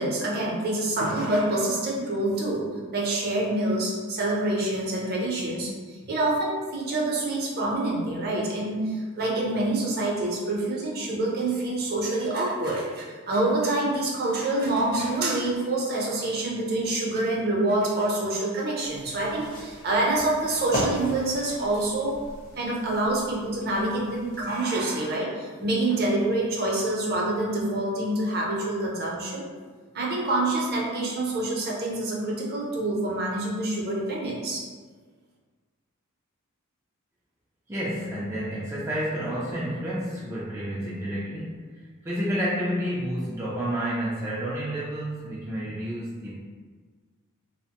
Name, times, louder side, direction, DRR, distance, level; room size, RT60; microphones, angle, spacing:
voice 1, 0.0-2.7 2.9-22.2 22.6-29.5 29.9-34.6, right 2 dB, 45° right, -3 dB, 0.6 m, -26 dB
sound 1, 18.8-24.4, equal, 40° left, 0.6 m, -37 dB
voice 2, 37.7-46.4, equal, 10° right, -7 dB, 0.3 m, -30 dB
2.9 x 2.1 x 2.8 m, 1.5 s
head